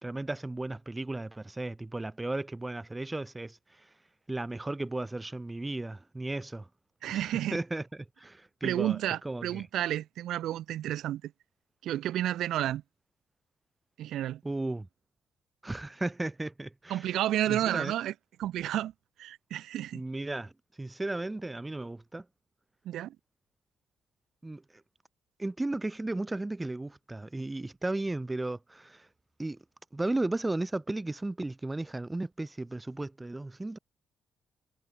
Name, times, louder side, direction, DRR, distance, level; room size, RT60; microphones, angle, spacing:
voice 1, 0.0-3.9 4.3-6.7 7.1-9.0 9.2-9.7 14.4-14.9 15.6-17.1 17.5-17.9 19.9-20.5 20.8-22.3 24.4-24.6 25.4-29.1 29.4-29.6 29.9-33.8, right 2 dB, 15° right, 0.7 m, -35 dB
voice 2, 7.0-7.6 8.6-11.3 11.8-12.8 14.0-14.4 16.9-18.1 18.4-18.9 19.2-20.0 22.8-23.2, right 12 dB, 80° right, 0.7 m, -31 dB
cardioid pair, 90°, 0 cm